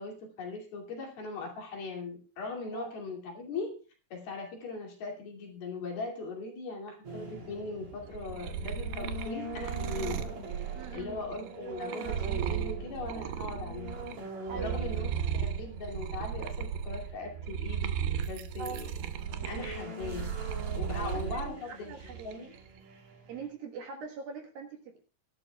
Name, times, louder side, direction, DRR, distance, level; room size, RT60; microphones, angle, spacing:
voice 1, 0.0-3.8 4.1-10.2 10.9-14.0 14.5-15.1 15.3-17.9 18.3-18.9 19.4-20.3 20.7-21.9 22.2-22.5, left 3 dB, 60° left, 1 dB, 4.2 m, -39 dB
sound 1, 7.0-23.5, right 2 dB, 40° right, 4.0 m, -44 dB
sound 2, 7.9-14.2 14.5-21.5 21.9-22.6, right 8 dB, 80° right, 2.3 m, -35 dB
voice 2, 10.7-11.2 14.5-14.8 18.6-18.8 20.9-22.4 23.3-25.0, right 5 dB, 65° right, 2 dB, 2.8 m, -43 dB
21.5 x 11.5 x 2.3 m, 0.36 s
omnidirectional pair, 5.3 m